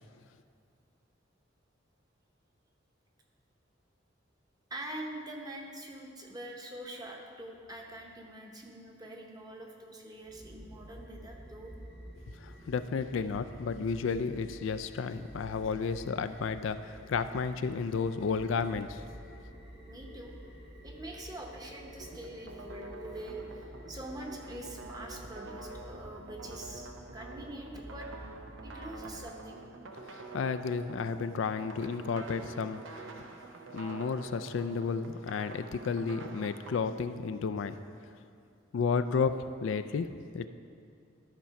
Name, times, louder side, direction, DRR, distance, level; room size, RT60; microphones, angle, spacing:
voice 1, 4.7-11.7 19.9-20.3 20.8-28.1 28.6-29.6, right 1 dB, 20° right, 0 dB, 1.0 m, -44 dB
sound 1, 10.2-29.2, equal, 55° right, 1.3 m, -50 dB
voice 2, 12.3-19.0 30.1-33.1 33.7-37.8 38.7-40.1 40.3-40.5, left 5 dB, 75° left, 11 dB, 0.4 m, -32 dB
sound 2, 22.0-36.8, right 3 dB, 75° right, 0.7 m, -47 dB
12.5 x 4.5 x 5.8 m, 2.4 s
head